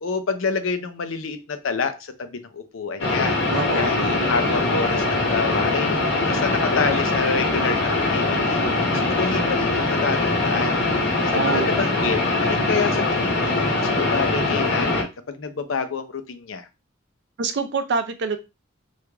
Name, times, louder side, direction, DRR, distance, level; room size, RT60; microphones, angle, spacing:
voice 1, 0.0-3.4 3.8-6.0 6.3-8.6 8.9-10.8 11.3-16.7, left 5 dB, 80° left, 9 dB, 0.6 m, -28 dB
sound 1, 3.0-15.0, left 2 dB, 65° left, 1.0 m, -22 dB
voice 2, 3.5-4.3 11.2-11.7 17.4-18.4, right 4 dB, 60° right, 9 dB, 0.5 m, -26 dB
3.2 x 2.4 x 3.4 m, 0.27 s
head